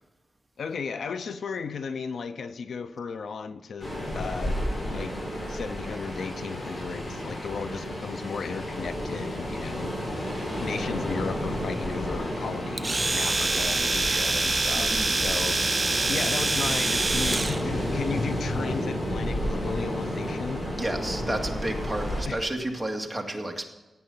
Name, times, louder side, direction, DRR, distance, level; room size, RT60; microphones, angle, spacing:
voice 1, 0.6-4.6 4.8-5.2 5.5-9.9 10.6-20.6 22.3-22.4, left 5 dB, 80° left, 11 dB, 0.7 m, -35 dB
Ocean, 3.8-22.2, equal, 40° left, 5.6 m, -32 dB
Domestic sounds home sounds, 12.8-17.6, right 3 dB, 25° right, 0.6 m, -25 dB
voice 2, 14.7-15.2 20.7-23.7, right 1 dB, 10° right, 2 dB, 2.2 m, -31 dB
15.5 x 9.4 x 5.7 m, 1.1 s
wide cardioid pair, 100°, 0 cm